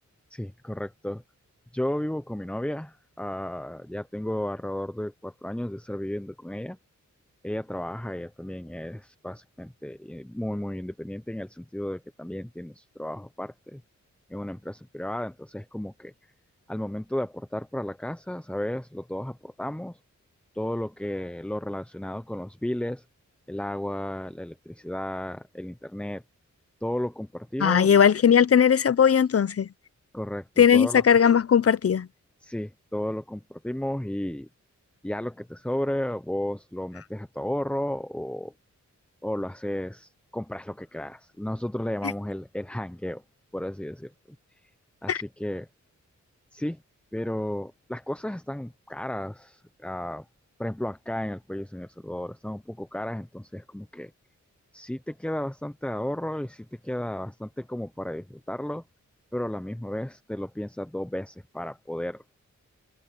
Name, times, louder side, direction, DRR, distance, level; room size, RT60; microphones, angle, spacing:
voice 1, 0.3-1.2 1.7-6.8 7.4-13.8 14.3-16.1 16.7-20.0 20.5-23.0 23.5-26.2 26.8-27.9 30.1-31.0 32.4-34.5 35.0-38.5 39.2-43.2 43.5-44.1 45.0-45.7 46.5-46.8 47.1-50.3 50.6-54.1 54.7-58.8 59.3-62.2, left 1 dB, 5° left, 0.7 m, -33 dB
voice 2, 27.6-29.7 30.6-32.1 45.1-45.2, left 8 dB, 50° left, 0.7 m, -19 dB
wide cardioid pair, 100°, 30 cm